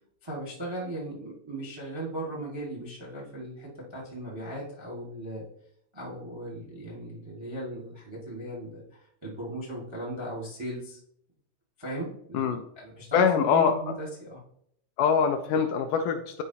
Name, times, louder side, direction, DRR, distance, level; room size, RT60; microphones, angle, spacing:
voice 1, 0.2-5.4 5.9-11.0 11.8-14.4, right 1 dB, 40° right, -4 dB, 0.3 m, -37 dB
voice 2, 13.1-14.0 15.0-16.4, left 6 dB, 80° left, 5 dB, 1.8 m, -24 dB
9.9 x 4.6 x 2.8 m, 0.68 s
omnidirectional pair, 3.9 m